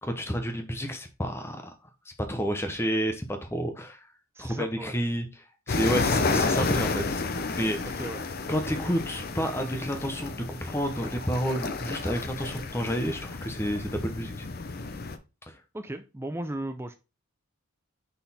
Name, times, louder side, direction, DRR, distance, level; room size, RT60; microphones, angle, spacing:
voice 1, 0.0-1.7 2.3-4.1 4.4-5.3 5.7-7.9 8.5-14.5 15.5-15.6, equal, 10° left, 6 dB, 0.8 m, -30 dB
voice 2, 4.3-4.9 5.8-6.1 7.8-8.2 15.7-16.9, right 1 dB, 10° right, 8 dB, 0.4 m, -36 dB
sound 1, 5.7-15.2, left 3 dB, 45° left, 0.5 m, -31 dB
5.7 x 4.1 x 4.1 m, 0.29 s
head